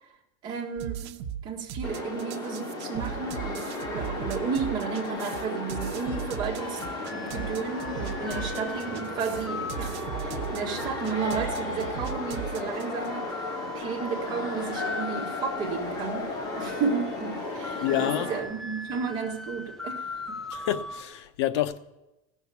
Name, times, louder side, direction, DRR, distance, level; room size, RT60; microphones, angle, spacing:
voice 1, 0.4-6.8 7.1-13.3 13.7-20.4, right 5 dB, 30° right, 1.6 m, -33 dB
sound 1, 0.8-13.1, right 9 dB, 75° right, 0.9 m, -37 dB
sound 2, 1.8-18.4, left 2 dB, 25° left, 2.2 m, -35 dB
sound 3, 6.5-21.0, left 2 dB, 5° left, 0.5 m, -40 dB
voice 2, 17.8-18.3 20.5-21.8, left 12 dB, 75° left, 0.8 m, -28 dB
15.5 x 6.6 x 8.2 m
cardioid pair, 180°, 15 cm